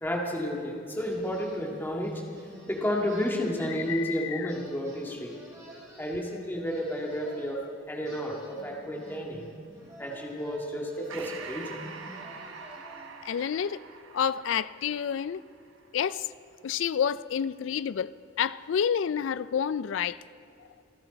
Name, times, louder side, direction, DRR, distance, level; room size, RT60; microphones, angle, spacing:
voice 1, 0.0-2.2 2.7-5.3 6.0-7.6 7.9-9.4 10.0-11.8, equal, 10° left, 2.0 m, -31 dB
sound 1, 1.0-4.2 4.5-7.6 8.0-13.3, right 1 dB, 15° right, 4.6 m, -48 dB
voice 2, 3.7-4.5 13.2-13.8 14.1-15.4 15.9-16.3 16.6-18.1 18.4-20.2, left 8 dB, 70° left, 0.3 m, -29 dB
Breathing, 11.1-16.0, right 5 dB, 80° right, 1.0 m, -45 dB
26.5 x 11.5 x 4.1 m
head